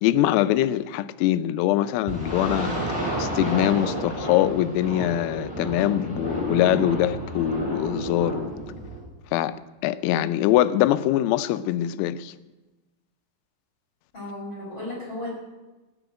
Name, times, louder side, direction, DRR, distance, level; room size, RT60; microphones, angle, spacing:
voice 1, 0.0-2.7 3.2-8.5 9.3-9.5 9.8-12.3, left 13 dB, 85° left, 3.3 m, -23 dB
sound 1, 2.1-9.0, right 1 dB, 5° right, 5.0 m, -30 dB
voice 2, 14.1-15.3, left 1 dB, 25° left, 5.5 m, -34 dB
17.0 x 7.1 x 8.9 m
omnidirectional pair, 5.9 m